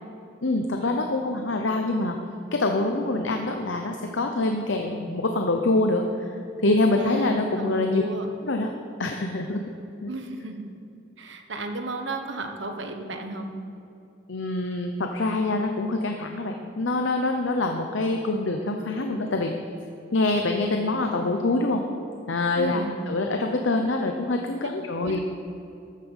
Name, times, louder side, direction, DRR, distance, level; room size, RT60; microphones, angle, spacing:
voice 1, 0.4-2.2 2.5-6.4 6.6-8.0 8.4-8.7 9.0-9.6 10.0-10.1 14.3-19.5 20.1-21.8 22.3-25.2, left 2 dB, 75° left, 4 dB, 0.8 m, -25 dB
voice 2, 7.0-8.3 10.1-10.6 11.2-13.5 22.6-23.0 24.6-24.7 25.0-25.2, right 2 dB, 70° right, 5 dB, 1.2 m, -33 dB
13.5 x 8.5 x 5.6 m, 2.7 s
head